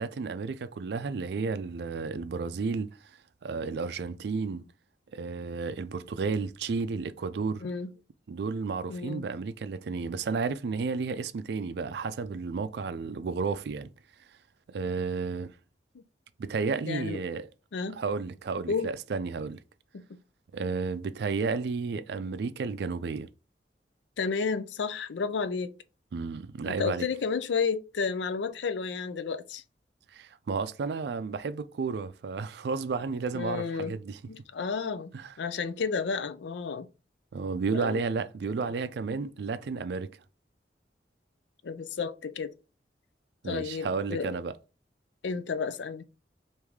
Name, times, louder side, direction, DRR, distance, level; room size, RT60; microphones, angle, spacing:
voice 1, 0.0-3.0 3.4-4.6 5.1-7.6 8.3-13.9 14.7-15.5 16.4-17.5 17.9-19.6 20.5-23.3 26.1-27.1 30.1-34.2 35.1-35.3 37.3-40.1 43.4-44.5, right 4 dB, 65° right, 0.4 m, -32 dB
voice 2, 7.6-7.9 8.9-9.3 15.9-16.0 16.9-17.2 17.7-18.0 18.7-18.9 19.9-20.2 24.2-25.7 26.6-29.6 33.3-34.0 34.3-35.1 35.4-36.9 37.7-38.0 38.6-38.7 41.6-42.5 43.4-44.3 45.2-46.0, left 5 dB, 85° left, 0.5 m, -32 dB
4.7 x 2.6 x 3.5 m
head